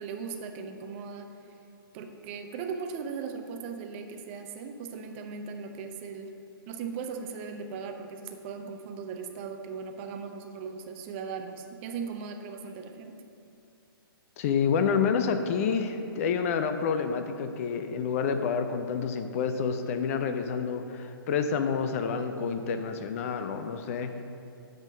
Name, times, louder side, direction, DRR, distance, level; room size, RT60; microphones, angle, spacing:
voice 1, 0.0-1.6 1.9-6.3 6.7-13.2, right 5 dB, 30° right, 5 dB, 0.6 m, -38 dB
voice 2, 14.4-24.2, left 6 dB, 35° left, 8 dB, 0.5 m, -28 dB
10.5 x 3.7 x 6.2 m, 2.6 s
figure-of-eight pair, 125°, 12 cm